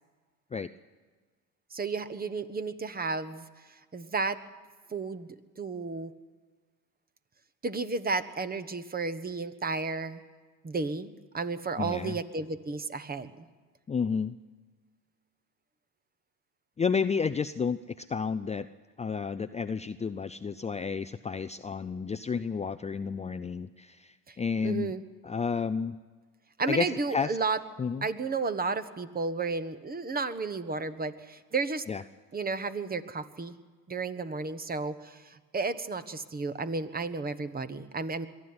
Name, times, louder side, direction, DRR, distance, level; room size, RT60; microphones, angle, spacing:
voice 1, 1.7-4.4 4.9-6.1 7.6-10.2 10.6-13.4 24.3-24.4 24.6-25.0 26.6-27.6 28.0-31.8 32.3-33.6 33.9-38.3, right 4 dB, 25° right, 13 dB, 1.3 m, -33 dB
voice 2, 11.8-12.2 13.9-14.4 16.8-18.7 19.0-24.9 25.2-26.0 26.7-27.4 27.8-28.1 31.9-32.0, left 5 dB, 20° left, 11 dB, 0.5 m, -31 dB
22.5 x 13.5 x 9.7 m, 1.4 s
supercardioid pair, 85°, 38 cm